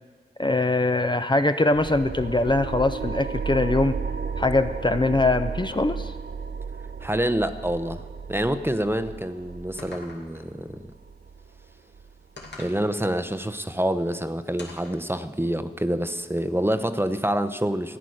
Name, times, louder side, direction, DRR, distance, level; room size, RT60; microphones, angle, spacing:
voice 1, 0.4-4.0 4.4-6.1, left 2 dB, 25° left, 9 dB, 0.6 m, -22 dB
sound 1, 1.7-12.8, right 5 dB, 65° right, 0.5 m, -34 dB
voice 2, 7.0-8.0 8.3-10.9 12.6-18.0, right 1 dB, 10° right, 10 dB, 0.7 m, -27 dB
sound 2, 9.8-10.5 12.4-12.8 14.6-15.0, left 2 dB, 80° left, 2.1 m, -42 dB
14.0 x 9.1 x 6.5 m, 1.4 s
cardioid pair, 45°, 18 cm